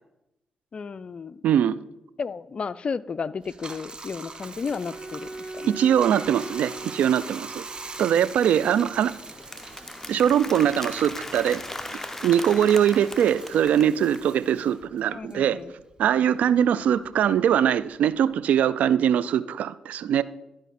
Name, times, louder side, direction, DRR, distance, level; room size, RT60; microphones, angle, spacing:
voice 1, 0.7-1.4 2.2-5.7 15.1-15.7, left 5 dB, 45° left, 16 dB, 0.4 m, -33 dB
voice 2, 1.4-1.8 5.7-7.7 8.0-9.1 10.1-11.6 12.2-15.6 16.0-20.2, right 9 dB, 75° right, 17 dB, 0.3 m, -22 dB
Bathtub (filling or washing), 3.4-16.2 16.6-18.4, right 3 dB, 35° right, 1.0 m, -43 dB
Bowed string instrument, 4.6-8.1, right 2 dB, 60° right, 3.4 m, -40 dB
Applause, 8.5-14.3, left 2 dB, 15° left, 0.8 m, -38 dB
12.0 x 4.9 x 4.2 m, 0.90 s
supercardioid pair, 50°, 3 cm